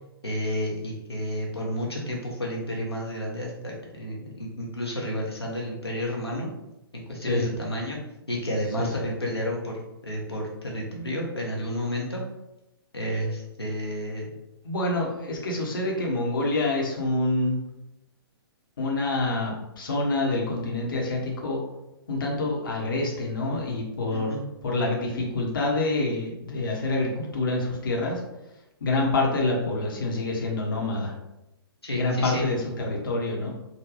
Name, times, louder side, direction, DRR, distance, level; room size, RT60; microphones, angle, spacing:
voice 1, 0.2-6.5 6.9-8.0 8.3-12.2 12.9-14.3 24.1-24.4 31.8-32.4, equal, 90° left, -2 dB, 0.7 m, -31 dB
voice 2, 8.8-9.1 14.6-17.6 18.8-21.6 22.1-24.3 24.6-28.2 28.8-31.1 31.9-33.5, left 2 dB, 60° left, -1 dB, 0.8 m, -27 dB
3.7 x 2.2 x 3.2 m, 0.91 s
figure-of-eight pair, 120°, 13 cm